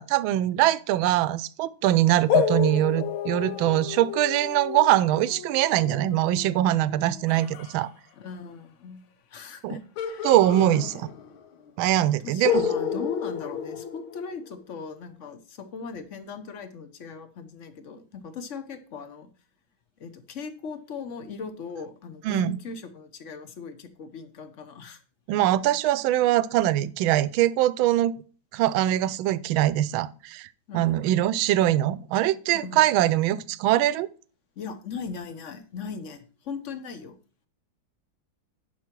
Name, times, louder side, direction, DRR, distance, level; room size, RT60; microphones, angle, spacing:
voice 1, 0.0-7.9 9.6-9.7 10.2-10.9 11.8-12.6 22.2-22.6 25.3-28.1 28.5-30.5 30.7-34.1, right 13 dB, 80° right, 1.3 m, -22 dB
sound 1, 2.3-7.7 10.0-11.4 11.7-11.8 12.4-14.6, left 7 dB, 85° left, 1.8 m, -30 dB
voice 2, 8.1-9.0 9.3-10.3 10.6-11.1 12.2-19.3 20.0-25.0 30.7-31.1 32.5-32.8 34.6-37.2, left 5 dB, 50° left, 0.9 m, -39 dB
10.5 x 5.6 x 4.5 m
omnidirectional pair, 2.2 m